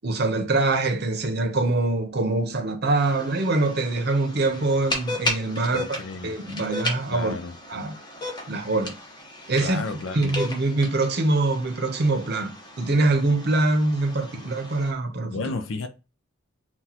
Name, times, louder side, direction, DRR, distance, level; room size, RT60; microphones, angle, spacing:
voice 1, 0.0-7.3 7.7-8.0 8.5-9.0 9.5-9.8 10.1-15.3, right 2 dB, 50° right, 0.7 m, -24 dB
sound 1, 3.0-14.9, left 2 dB, 20° left, 0.8 m, -35 dB
voice 2, 5.6-6.3 7.1-7.6 9.6-10.3 15.3-15.9, left 3 dB, 75° left, 0.5 m, -32 dB
5.9 x 2.3 x 2.8 m
head